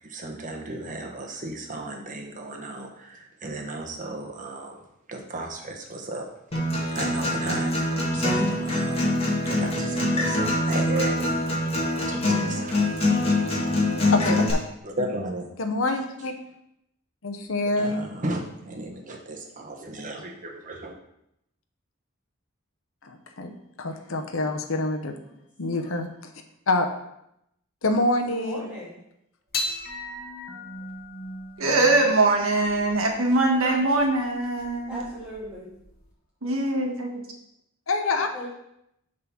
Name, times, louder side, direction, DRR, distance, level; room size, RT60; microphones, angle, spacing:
voice 1, 0.0-4.8 5.1-6.3 6.9-9.0 9.4-11.2 11.7-13.5 14.8-15.5 17.8-20.9, right 2 dB, 40° right, 2 dB, 1.1 m, -35 dB
Acoustic guitar, 6.5-14.5, left 1 dB, 30° left, 1.8 m, -24 dB
voice 2, 14.1-14.6 15.6-16.3 17.2-18.0 23.0-23.5 23.8-25.1 25.6-26.3 26.7-26.9 27.8-28.7 37.9-38.3, left 2 dB, 75° left, 6 dB, 0.8 m, -26 dB
voice 3, 28.3-28.9 30.5-30.6 34.9-35.7 38.3-38.5, equal, 5° right, -8 dB, 2.6 m, -38 dB
sound 1, 29.5-36.1, left 2 dB, 45° left, 1.2 m, -38 dB
voice 4, 31.6-35.0 36.4-37.2, right 2 dB, 85° right, 2 dB, 1.4 m, -22 dB
7.3 x 3.9 x 6.0 m, 0.80 s
head